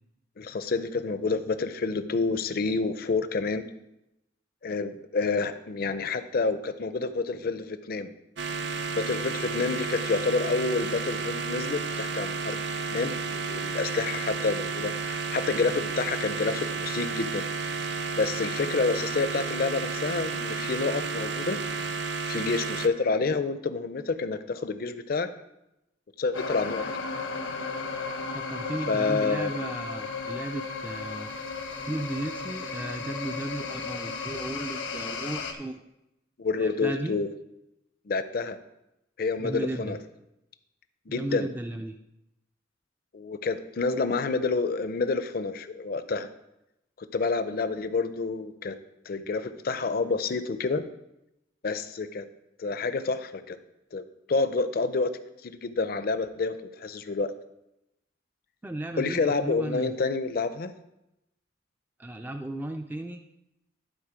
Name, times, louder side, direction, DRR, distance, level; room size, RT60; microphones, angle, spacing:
voice 1, 0.4-3.6 4.6-8.1 8.9-12.6 12.9-17.5 18.1-21.6 22.3-25.3 26.2-26.9 28.9-29.5 36.4-37.3 38.1-38.6 39.2-40.0 41.1-41.5 43.1-46.3 47.0-48.7 49.1-50.8 51.6-52.2 52.6-53.6 53.9-54.0 54.3-55.1 55.4-57.3 59.0-60.7, left 4 dB, 50° left, 12 dB, 0.5 m, -28 dB
sound 1, 8.4-22.9, right 4 dB, 60° right, 0.5 m, -32 dB
sound 2, 26.3-35.5, left 4 dB, 85° left, 0.9 m, -34 dB
voice 2, 28.3-31.3 31.9-35.8 36.6-37.1 39.4-40.0 41.1-42.0 58.6-59.9 62.0-63.2, right 1 dB, 10° right, 6 dB, 0.3 m, -35 dB
11.5 x 4.0 x 5.0 m, 0.88 s
head